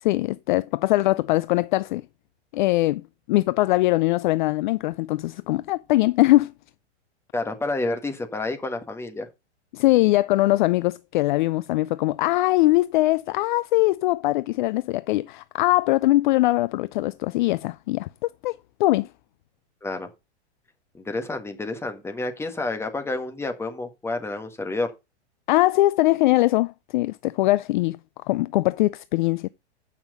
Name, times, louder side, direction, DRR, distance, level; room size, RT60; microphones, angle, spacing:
voice 1, 0.0-2.0 2.5-3.0 3.3-6.5 9.7-19.1 25.5-28.0 28.3-29.5, left 18 dB, 45° left, 0.4 m, -21 dB
voice 2, 7.3-9.3 19.8-20.1 20.9-24.9, left 2 dB, 5° left, 1.5 m, -29 dB
8.8 x 5.9 x 5.1 m
hypercardioid pair, 130°, 34 cm